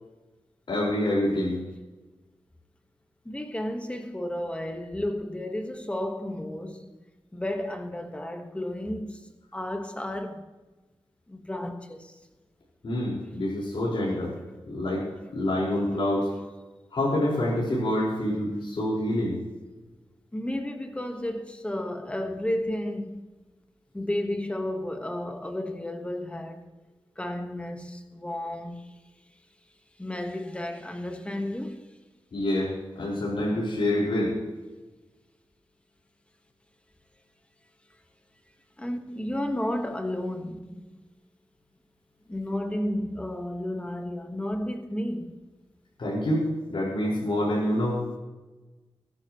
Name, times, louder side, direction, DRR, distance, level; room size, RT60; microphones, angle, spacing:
voice 1, 0.7-1.6 12.8-14.3 14.7-15.0 15.3-16.3 16.9-19.4 32.3-34.4 46.0-46.4 46.7-48.0, left 1 dB, 65° left, 5.1 m, -26 dB
voice 2, 3.2-6.9 7.3-10.4 11.3-12.1 20.3-23.2 23.9-26.7 27.2-28.9 30.0-31.8 38.8-41.0 42.3-45.4, left 1 dB, 15° left, 1.5 m, -32 dB
21.0 x 11.5 x 3.2 m
wide cardioid pair, 135°, 9 cm